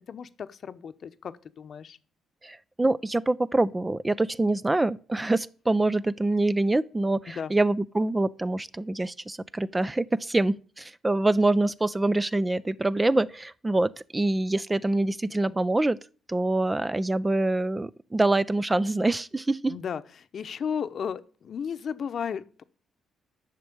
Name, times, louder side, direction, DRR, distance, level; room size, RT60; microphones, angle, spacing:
voice 1, 0.1-2.0 7.4-7.5 19.7-22.6, left 7 dB, 55° left, 0.9 m, -34 dB
voice 2, 2.4-16.0 16.3-19.7, right 2 dB, 15° right, 0.5 m, -25 dB
10.5 x 6.2 x 8.6 m
cardioid pair, 90°, 0 cm